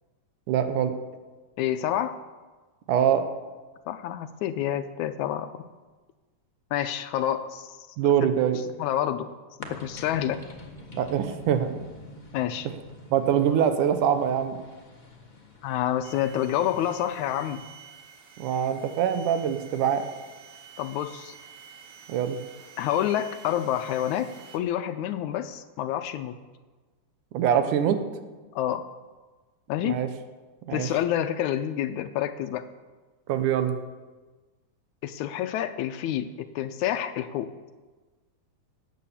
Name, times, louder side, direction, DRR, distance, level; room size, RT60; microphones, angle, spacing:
voice 1, 0.5-1.0 2.9-3.3 8.0-8.6 11.0-11.8 13.1-14.6 18.4-20.0 22.1-22.4 27.3-28.0 29.8-30.1 30.7-30.9 33.3-33.7, right 9 dB, 75° right, 9 dB, 2.4 m, -24 dB
voice 2, 1.6-2.2 3.9-5.7 6.7-8.3 8.8-9.3 9.6-10.4 12.3-12.7 15.6-17.6 20.8-21.3 22.8-26.4 28.5-28.9 29.7-30.0 30.7-32.7 35.0-37.5, left 11 dB, 80° left, 10 dB, 1.9 m, -28 dB
sound 1, 9.6-17.6, left 2 dB, 30° left, 0.7 m, -46 dB
sound 2, 16.0-24.6, right 7 dB, 55° right, 2.1 m, -49 dB
18.0 x 8.4 x 7.2 m, 1.3 s
omnidirectional pair, 3.7 m